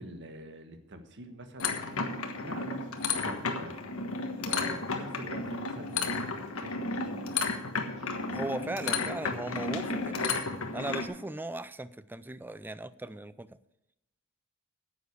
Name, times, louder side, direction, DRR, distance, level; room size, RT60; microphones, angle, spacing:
voice 1, 0.0-3.9 4.4-7.5 7.8-8.3 8.6-9.0, right 1 dB, 55° right, 1.5 m, -46 dB
sound 1, 1.6-11.1, left 4 dB, 70° left, 1.4 m, -33 dB
voice 2, 8.3-10.4 10.7-13.6, right 2 dB, 10° right, 0.3 m, -38 dB
9.9 x 7.9 x 8.1 m
head